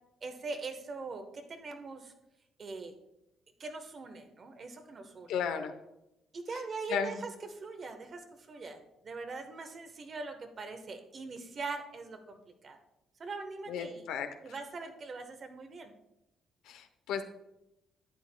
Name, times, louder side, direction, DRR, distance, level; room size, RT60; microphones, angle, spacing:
voice 1, 0.2-2.1 2.6-2.9 3.6-5.3 6.3-12.8 13.2-14.0 14.4-15.9, right 3 dB, 45° right, 6 dB, 1.1 m, -42 dB
voice 2, 5.3-5.7 6.5-6.6 6.9-7.2 13.7-14.5 16.6-17.2, left 7 dB, 90° left, 8 dB, 0.8 m, -35 dB
11.5 x 8.6 x 2.3 m, 0.89 s
cardioid pair, 90°, 0 cm